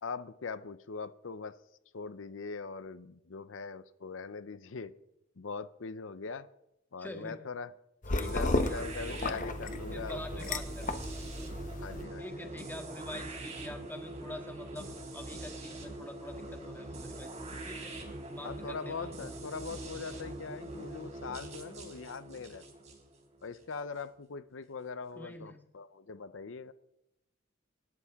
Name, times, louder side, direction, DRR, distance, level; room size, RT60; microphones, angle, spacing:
voice 1, 0.0-1.6 1.9-4.9 5.4-6.5 6.9-7.7 8.1-10.6 11.8-12.5 18.4-22.6 23.4-26.7, left 4 dB, 80° left, 14 dB, 0.6 m, -41 dB
voice 2, 7.0-7.3 8.1-8.8 9.1-9.3 9.9-11.0 12.2-14.9 15.1-17.3 17.6-18.0 18.3-19.3 25.1-25.6, left 1 dB, 10° left, 4 dB, 1.8 m, -46 dB
sound 1, 8.0-12.0, left 2 dB, 40° left, 1.0 m, -34 dB
sound 2, 8.2-24.0, right 1 dB, 35° right, 3.5 m, -43 dB
26.0 x 12.0 x 3.6 m, 0.87 s
head